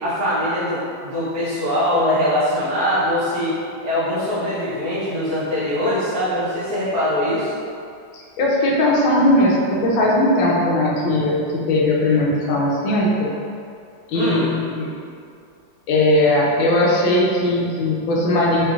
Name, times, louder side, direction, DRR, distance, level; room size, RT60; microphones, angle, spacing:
voice 1, 0.0-3.5 3.8-7.5 12.1-12.2 14.1-14.5, left 1 dB, 65° right, -11 dB, 1.8 m, -22 dB
voice 2, 8.4-11.4 11.7-13.3 14.1-14.9 15.9-18.6, left 1 dB, 80° left, -3 dB, 1.4 m, -18 dB
4.2 x 3.2 x 2.4 m, 2.4 s
omnidirectional pair, 2.1 m